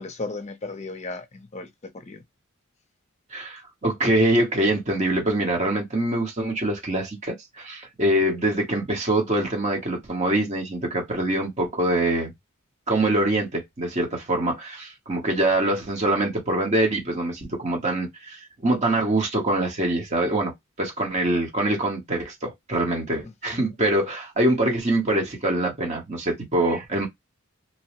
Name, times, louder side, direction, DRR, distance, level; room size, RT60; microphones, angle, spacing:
voice 1, 0.0-1.7 1.9-2.2 23.2-23.7, left 3 dB, 35° left, 0.6 m, -36 dB
voice 2, 3.3-12.3 12.9-20.5 20.8-27.1, right 1 dB, 35° right, 0.9 m, -24 dB
2.9 x 2.0 x 3.0 m
head